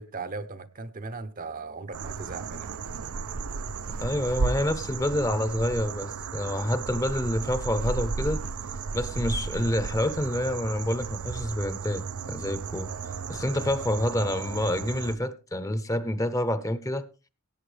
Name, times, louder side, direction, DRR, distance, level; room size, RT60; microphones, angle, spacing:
voice 1, 0.0-2.8, right 3 dB, 40° right, 0.8 m, -38 dB
sound 1, 1.9-15.2, right 4 dB, 80° right, 0.6 m, -34 dB
voice 2, 3.9-8.4 8.9-12.9 13.3-17.1, left 1 dB, 15° left, 0.8 m, -28 dB
17.5 x 8.7 x 3.4 m
head